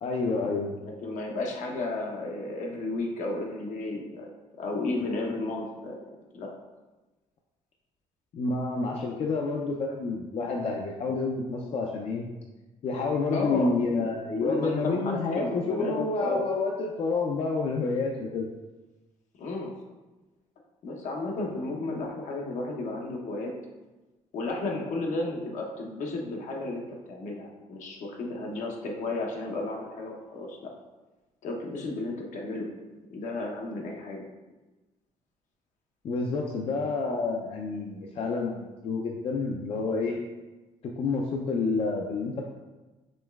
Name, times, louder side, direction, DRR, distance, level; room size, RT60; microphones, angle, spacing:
voice 1, 0.0-0.8 8.3-12.3 12.8-18.5 36.0-40.2 41.0-42.5, left 3 dB, 45° left, 0 dB, 0.4 m, -29 dB
voice 2, 0.8-4.3 4.6-6.0 6.3-6.5 13.3-14.1 14.4-16.4 19.4-19.7 20.8-23.5 24.3-30.7 31.4-32.7 33.1-34.2, left 2 dB, 70° left, 0 dB, 0.8 m, -33 dB
5.2 x 3.0 x 2.3 m, 1.1 s
cardioid pair, 110°, 13 cm